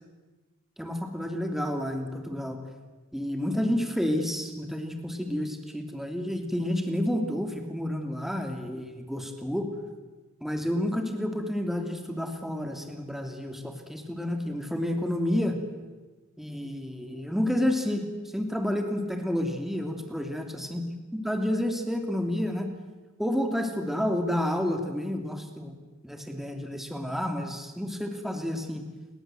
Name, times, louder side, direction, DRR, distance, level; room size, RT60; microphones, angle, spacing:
voice 1, 0.8-2.6 3.1-9.7 10.4-15.6 16.4-18.1 18.3-20.8 21.1-22.7 23.2-25.7 26.0-28.8, left 1 dB, ahead, 4 dB, 2.9 m, -30 dB
29.5 x 22.5 x 7.9 m, 1.2 s
head